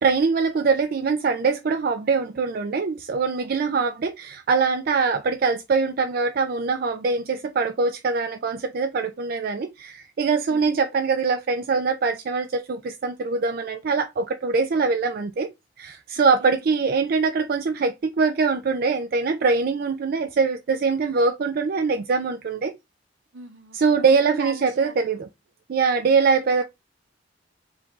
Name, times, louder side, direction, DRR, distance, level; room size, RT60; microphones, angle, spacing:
voice 1, 0.0-15.5 15.8-22.7 23.7-25.3 25.7-26.6, right 4 dB, 50° right, 0.4 m, -23 dB
voice 2, 23.3-25.2, right 3 dB, 75° right, 0.9 m, -40 dB
4.8 x 2.6 x 3.6 m
head